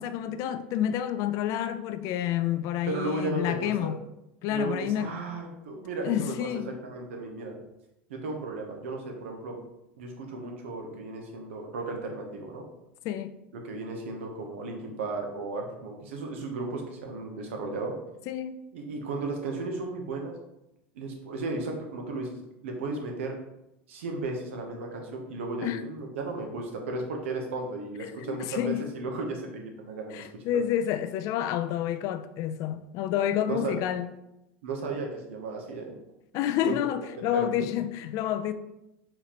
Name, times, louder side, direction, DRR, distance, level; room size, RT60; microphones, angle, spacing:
voice 1, 0.0-4.0 4.4-5.1 6.0-6.7 13.0-13.3 18.3-18.6 25.6-25.8 28.0-28.8 30.1-34.1 36.3-38.5, left 11 dB, 55° left, 0.4 m, -29 dB
voice 2, 2.9-4.0 4.5-7.6 8.1-9.6 10.0-12.6 13.6-17.9 18.7-20.4 20.9-22.4 22.6-23.4 23.9-30.3 30.5-30.6 33.5-33.8 34.6-36.0 36.6-36.8 37.2-37.7, right 3 dB, 80° right, 0.9 m, -35 dB
4.4 x 3.8 x 2.9 m
hypercardioid pair, 90°, 7 cm